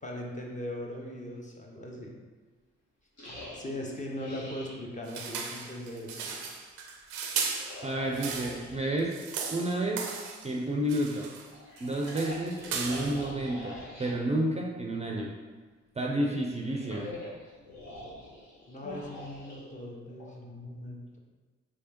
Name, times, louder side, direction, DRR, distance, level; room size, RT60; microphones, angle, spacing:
voice 1, 0.0-2.1 3.2-6.4 18.6-21.2, left 1 dB, 25° left, -1 dB, 0.8 m, -40 dB
sound 1, 3.2-4.8 7.5-8.9 11.5-14.2 16.4-20.3, left 1 dB, 60° left, 1.3 m, -44 dB
sound 2, 5.1-8.7 9.0-10.5 10.9-11.5 11.8-13.3, right 6 dB, 85° right, 0.5 m, -37 dB
voice 2, 7.8-9.1 9.5-10.0 10.4-11.3 11.8-15.3 16.0-17.1, right 1 dB, 20° right, 0 dB, 0.5 m, -30 dB
3.3 x 3.1 x 2.9 m, 1.3 s
hypercardioid pair, 45°, 31 cm